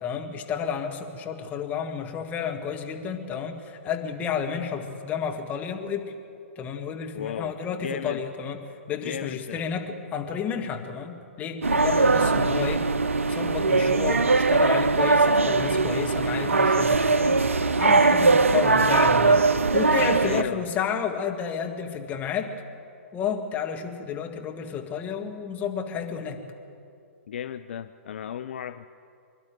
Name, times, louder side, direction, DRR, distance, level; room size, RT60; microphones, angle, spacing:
voice 1, 0.0-6.1 6.6-8.6 8.9-12.9 13.3-17.4 17.8-19.4 19.7-22.5 23.1-26.4, left 7 dB, 20° left, 3 dB, 1.8 m, -31 dB
voice 2, 7.1-8.2 9.0-9.6 12.0-12.4 20.2-20.7 27.3-28.9, left 9 dB, 55° left, 11 dB, 0.5 m, -35 dB
sound 1, 11.6-20.4, right 3 dB, 70° right, 0.7 m, -21 dB
25.0 x 12.0 x 9.2 m, 2.5 s
figure-of-eight pair, 115°, 7 cm